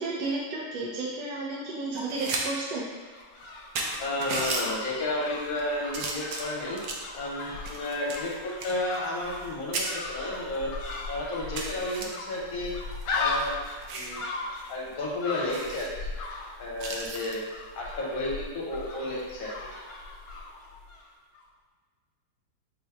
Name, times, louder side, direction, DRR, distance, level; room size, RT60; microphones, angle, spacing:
voice 1, 0.0-2.9, right 3 dB, 85° right, -4 dB, 1.3 m, -32 dB
sound 1, 1.9-2.4 2.8-2.9 3.4-3.5 3.8-4.7 5.3-5.6 5.9-7.1 7.7-9.5 9.7-9.9 10.5-10.6 11.0-11.1 11.6-12.1 12.9-14.2 14.6-14.7 15.0-15.1 15.5-15.9 16.8-17.4 19.1-19.3, right 3 dB, 70° right, 1.0 m, -35 dB
sound 2, 2.9-21.1 21.3-21.4, left 3 dB, 75° left, 1.2 m, -38 dB
voice 2, 4.0-6.8 7.1-10.7 11.1-12.7 13.1-13.6 13.9-14.2 14.7-16.1 16.6-17.4 17.8-19.7, left 1 dB, 60° left, -3 dB, 1.3 m, -32 dB
4.3 x 2.2 x 4.6 m, 1.5 s
omnidirectional pair, 1.8 m